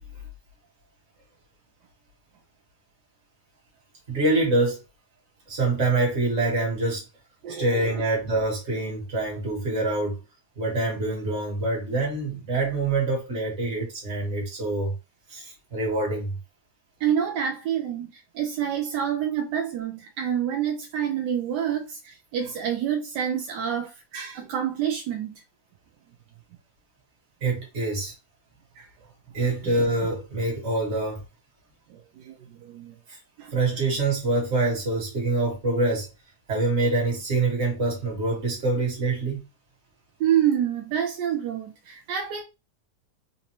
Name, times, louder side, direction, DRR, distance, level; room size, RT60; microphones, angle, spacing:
voice 1, 4.1-4.8 5.5-7.0 7.5-10.2 10.6-14.9 15.3-16.4 27.4-28.1 29.3-31.2 33.1-33.2 33.5-36.1 36.5-39.4, right 2 dB, 40° right, 1.7 m, -25 dB
voice 2, 7.4-8.0 17.0-25.3 28.8-28.9 29.4-29.5 31.9-33.0 33.4-33.5 40.2-42.4, right 9 dB, 80° right, 1.2 m, -28 dB
4.1 x 2.6 x 2.9 m
omnidirectional pair, 1.8 m